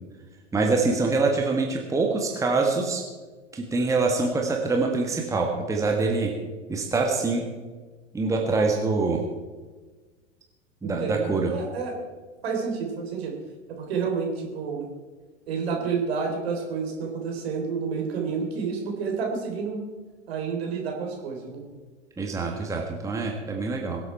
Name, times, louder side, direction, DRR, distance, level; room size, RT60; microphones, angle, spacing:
voice 1, 0.5-3.0 3.5-6.3 6.7-7.4 8.1-9.2 10.8-11.5 22.2-24.0, right 3 dB, 10° right, 1 dB, 1.5 m, -25 dB
voice 2, 10.8-11.9 12.4-13.3 13.7-14.9 15.5-19.8 20.3-21.6, right 5 dB, 55° right, 1 dB, 3.7 m, -29 dB
22.5 x 8.1 x 4.5 m, 1.4 s
figure-of-eight pair, 95°, 36 cm